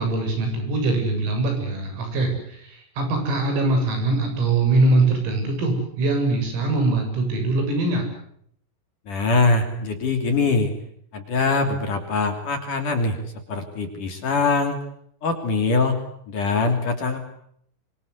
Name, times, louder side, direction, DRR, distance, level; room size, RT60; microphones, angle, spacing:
voice 1, 0.0-8.1, right 2 dB, 85° right, 5 dB, 10.0 m, -22 dB
voice 2, 9.1-10.7 11.1-13.2 13.5-14.8 15.2-15.9 16.3-17.2, left 3 dB, 45° left, 6 dB, 4.1 m, -22 dB
26.0 x 25.0 x 8.3 m, 0.68 s
omnidirectional pair, 5.9 m